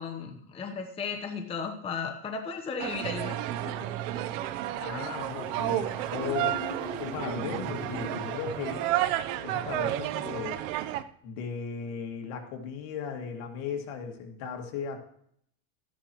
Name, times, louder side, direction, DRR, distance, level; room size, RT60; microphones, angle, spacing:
voice 1, 0.0-3.9 4.1-4.3, left 5 dB, 15° left, 4 dB, 0.7 m, -36 dB
sound 1, 2.8-11.0, right 13 dB, 60° right, 0.7 m, -32 dB
sound 2, 3.7-9.0, right 1 dB, 5° right, 4.7 m, -42 dB
voice 2, 4.7-6.6 7.0-8.9 9.4-10.6 11.2-15.0, left 6 dB, 60° left, 3 dB, 2.2 m, -36 dB
13.5 x 10.5 x 3.0 m, 0.66 s
supercardioid pair, 135°, 44 cm